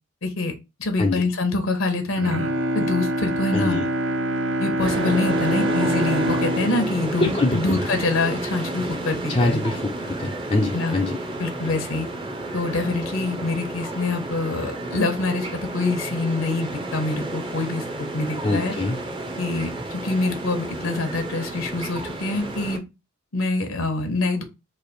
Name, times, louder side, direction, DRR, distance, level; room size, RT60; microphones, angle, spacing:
voice 1, 0.2-0.5 0.8-2.5 2.7-3.8 4.6-9.6 10.7-11.0 11.4-12.1 12.5-17.8 18.1-18.7 19.4-22.8 23.3-24.4, left 2 dB, 75° left, 6 dB, 0.9 m, -25 dB
Bowed string instrument, 2.1-8.3 8.7-8.8, right 1 dB, 65° right, 0.5 m, -26 dB
voice 2, 3.5-3.9 7.2-7.8 9.3-11.2 18.4-19.0, left 2 dB, 30° left, 1 dB, 0.4 m, -24 dB
sound 1, 4.8-22.8, right 2 dB, 25° right, 0.6 m, -31 dB
3.3 x 2.5 x 4.0 m, 0.25 s
head